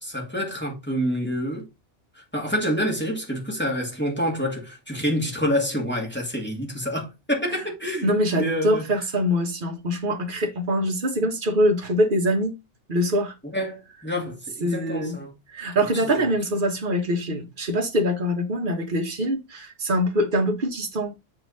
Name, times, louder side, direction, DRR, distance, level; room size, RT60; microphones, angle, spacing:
voice 1, 0.0-1.6 2.1-8.8 13.5-15.3 15.9-16.2, equal, 10° left, 2.5 m, -27 dB
voice 2, 8.0-12.5 12.9-13.3 14.6-15.2 15.5-21.1, equal, 45° right, 1.5 m, -24 dB
7.6 x 4.3 x 4.1 m
omnidirectional pair, 1.2 m